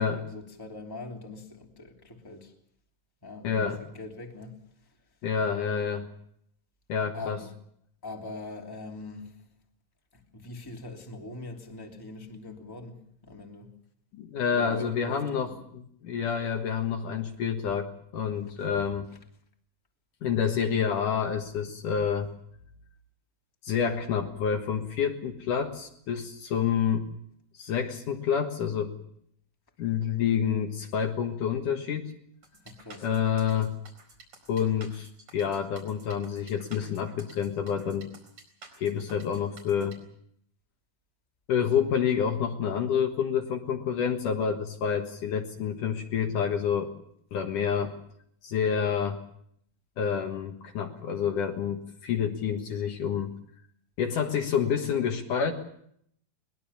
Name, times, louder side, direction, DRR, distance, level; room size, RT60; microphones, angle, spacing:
voice 1, 0.0-2.5 3.2-4.9 7.1-7.5 8.0-9.4 10.1-13.7 14.5-15.6 18.6-18.7 32.6-33.1, left 2 dB, 5° left, 1 dB, 2.5 m, -42 dB
voice 2, 3.4-3.8 5.2-6.1 6.9-7.4 14.1-19.1 20.2-22.3 23.6-27.1 27.6-29.0 29.8-32.1 33.0-33.7 34.5-38.1 38.8-40.0 41.5-46.9 47.3-48.0 48.4-49.2 50.0-53.3 54.0-55.5, left 7 dB, 65° left, 4 dB, 2.9 m, -28 dB
sound 1, 32.4-40.0, right 3 dB, 45° right, 5.6 m, -51 dB
22.5 x 21.0 x 7.1 m, 0.69 s
omnidirectional pair, 4.2 m